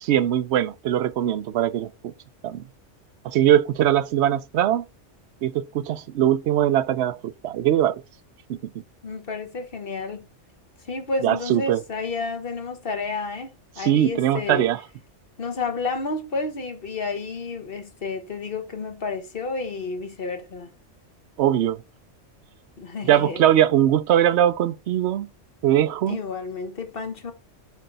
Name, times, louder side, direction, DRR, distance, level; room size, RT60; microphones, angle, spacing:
voice 1, 0.0-2.1 2.4-2.6 3.2-4.8 5.4-7.9 8.5-8.6 11.2-11.8 13.8-14.8 21.4-21.8 23.0-25.3 25.6-26.2, right 11 dB, 65° right, 0.8 m, -21 dB
voice 2, 9.0-10.3 10.9-13.5 13.8-14.6 15.4-20.7 22.8-23.4 26.1-27.3, left 3 dB, 50° left, 1.4 m, -30 dB
8.4 x 4.5 x 4.0 m
omnidirectional pair, 1.3 m